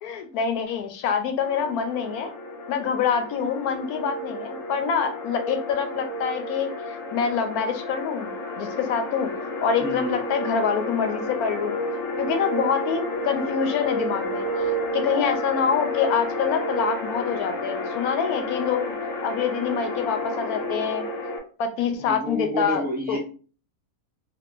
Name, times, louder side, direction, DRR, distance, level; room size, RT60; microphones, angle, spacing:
voice 1, 0.0-2.3 2.7-8.3 8.6-9.3 9.6-11.8 12.2-21.1 21.6-23.2, left 7 dB, 90° left, 7 dB, 1.1 m, -26 dB
sound 1, 1.4-21.4, left 1 dB, 65° left, 1.0 m, -31 dB
voice 2, 9.8-10.1 22.0-23.2, right 1 dB, 10° right, -4 dB, 0.8 m, -29 dB
3.5 x 2.8 x 2.5 m, 0.39 s
omnidirectional pair, 1.5 m